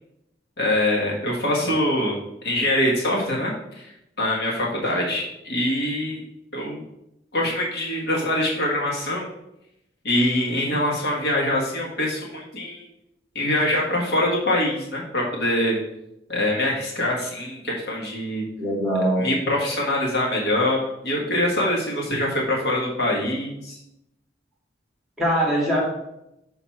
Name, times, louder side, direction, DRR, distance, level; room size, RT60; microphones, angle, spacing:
voice 1, 0.6-3.9 4.2-6.2 6.5-6.8 7.3-9.3 10.0-12.9 13.3-15.8 16.3-18.4 19.2-23.8, left 1 dB, 60° left, -3 dB, 1.5 m, -24 dB
voice 2, 18.6-19.3 25.2-25.8, equal, ahead, -4 dB, 2.0 m, -22 dB
5.8 x 4.0 x 5.7 m, 0.85 s
head